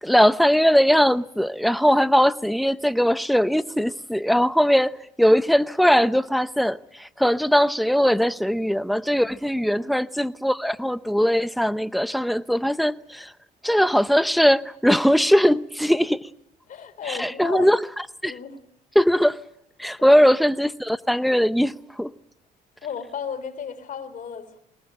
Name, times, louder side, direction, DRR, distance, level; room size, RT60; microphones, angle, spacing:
voice 1, 0.0-4.9 5.2-13.3 13.6-16.3 17.1-17.8 18.2-18.3 18.9-19.4 19.8-22.1, equal, ahead, 0.8 m, -20 dB
voice 2, 16.7-17.7 18.2-18.6 20.0-20.2 22.8-24.6, left 7 dB, 50° left, 3.9 m, -35 dB
22.5 x 19.5 x 8.9 m
cardioid pair, 110°, 17 cm